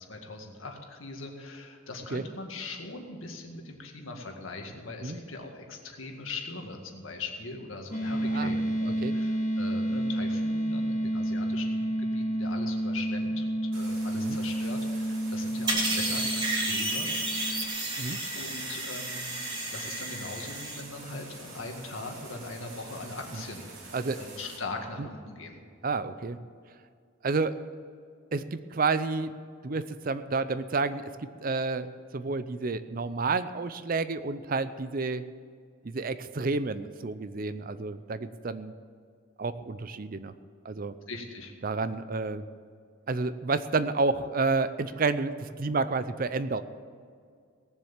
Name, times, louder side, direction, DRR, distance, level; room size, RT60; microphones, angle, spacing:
voice 1, 0.1-17.1 18.3-25.6 41.1-41.5, left 3 dB, 75° left, 3 dB, 2.0 m, -41 dB
sound 1, 7.9-17.6, right 1 dB, 35° left, 1.8 m, -30 dB
sound 2, 13.7-24.6, right 2 dB, 80° right, 2.9 m, -46 dB
sound 3, 15.7-20.8, right 2 dB, 20° right, 2.5 m, -32 dB
voice 2, 25.8-26.4 27.2-27.6 28.3-29.3 29.6-31.9 32.1-35.2 35.8-38.7 39.4-40.3 40.6-40.9 41.6-42.4 43.1-46.6, right 3 dB, 45° right, 13 dB, 0.5 m, -30 dB
18.0 x 7.4 x 7.4 m, 2.1 s
head